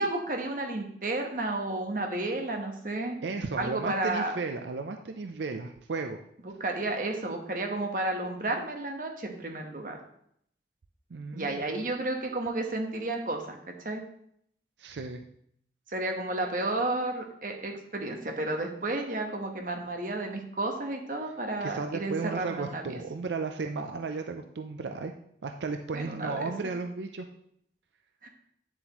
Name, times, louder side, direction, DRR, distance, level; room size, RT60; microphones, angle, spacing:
voice 1, 0.0-3.2 3.6-4.3 6.6-10.0 11.3-13.6 13.8-14.0 15.9-23.0 25.9-26.4 28.2-28.3, right 2 dB, 50° right, 3 dB, 1.2 m, -32 dB
voice 2, 3.2-6.2 11.1-11.6 14.8-15.2 21.6-25.1 25.4-27.3, right 4 dB, 85° right, 5 dB, 0.5 m, -34 dB
9.0 x 7.3 x 3.0 m, 0.69 s
head